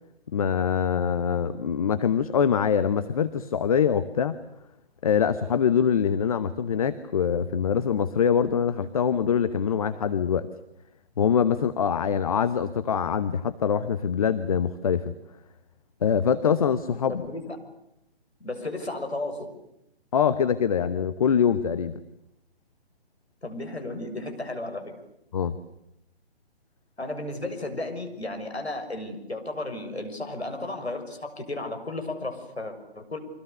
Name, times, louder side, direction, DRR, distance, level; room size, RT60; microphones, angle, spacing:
voice 1, 0.3-4.4 5.0-10.5 11.2-15.1 16.0-17.2 20.1-21.9 25.3-25.5, left 7 dB, 35° left, 12 dB, 1.0 m, -24 dB
voice 2, 17.1-17.6 18.4-19.5 23.4-24.9 27.0-33.2, left 2 dB, 80° left, 6 dB, 6.5 m, -34 dB
29.5 x 25.0 x 6.8 m, 0.80 s
figure-of-eight pair, 140°, 32 cm